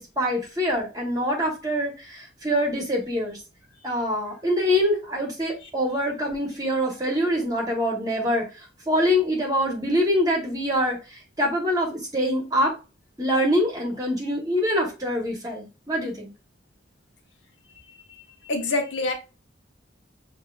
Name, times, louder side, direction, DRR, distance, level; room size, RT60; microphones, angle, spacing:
voice 1, 0.0-3.4 3.8-12.8 13.2-16.3, equal, 20° right, 0 dB, 1.1 m, -25 dB
voice 2, 18.4-19.1, left 2 dB, 80° left, 3 dB, 1.1 m, -25 dB
6.4 x 2.8 x 2.3 m, 0.31 s
head